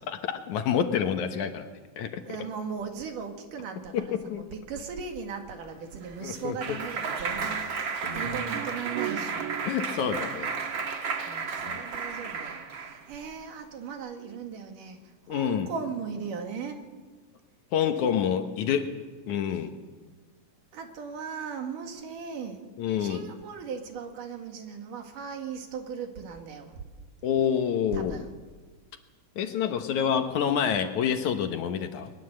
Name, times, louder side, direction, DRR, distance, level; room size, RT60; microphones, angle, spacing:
voice 1, 0.1-1.7 2.0-2.2 3.9-4.4 6.2-6.8 9.7-10.5 11.7-11.8 15.3-15.7 17.7-19.0 19.3-19.8 22.8-23.2 27.2-28.2 29.4-32.1, left 8 dB, 65° left, 7 dB, 2.4 m, -27 dB
voice 2, 2.2-9.5 10.6-16.8 20.7-22.6 23.0-26.9 27.9-28.4, right 6 dB, 75° right, 4 dB, 3.5 m, -38 dB
Clapping, 5.8-13.0, right 5 dB, 45° right, 1.8 m, -33 dB
22.0 x 21.0 x 7.8 m, 1.4 s
omnidirectional pair, 3.9 m